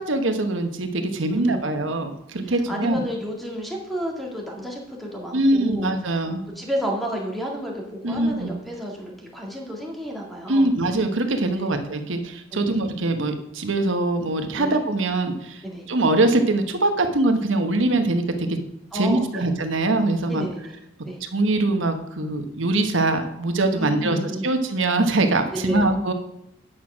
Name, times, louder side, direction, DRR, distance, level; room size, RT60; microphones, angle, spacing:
voice 1, 0.0-3.0 5.3-6.5 8.0-8.5 10.5-15.6 15.9-18.6 18.9-20.4 21.2-24.2 24.4-26.1, right 2 dB, 70° right, 7 dB, 1.1 m, -23 dB
voice 2, 1.3-1.8 2.4-5.9 6.6-10.7 11.6-11.8 12.5-12.8 14.6-14.8 15.6-15.8 18.9-19.5 20.3-20.8 21.1-21.2 23.8-24.5 25.5-25.9, equal, ahead, -1 dB, 2.0 m, -31 dB
9.3 x 6.1 x 6.2 m, 0.85 s
head